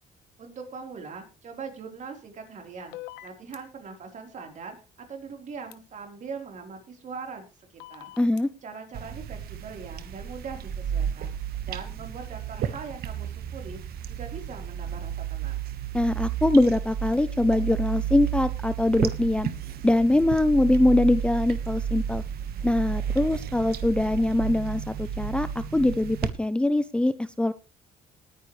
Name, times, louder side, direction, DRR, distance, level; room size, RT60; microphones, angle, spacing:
voice 1, 0.4-3.0 3.2-4.8 5.1-8.1 8.6-11.3 11.6-15.6, right 5 dB, 45° right, 4 dB, 4.0 m, -41 dB
sound 1, 2.9-3.6 5.7-5.8 7.8-8.4, left 16 dB, 90° left, 1.2 m, -42 dB
voice 2, 8.2-8.5 15.9-19.5 19.8-22.2 22.6-27.5, left 1 dB, 5° left, 14 dB, 0.5 m, -23 dB
sound 2, 8.9-26.3, right 9 dB, 65° right, 1.4 m, -32 dB
19.5 x 9.8 x 3.2 m, 0.31 s
cardioid pair, 110°, 17 cm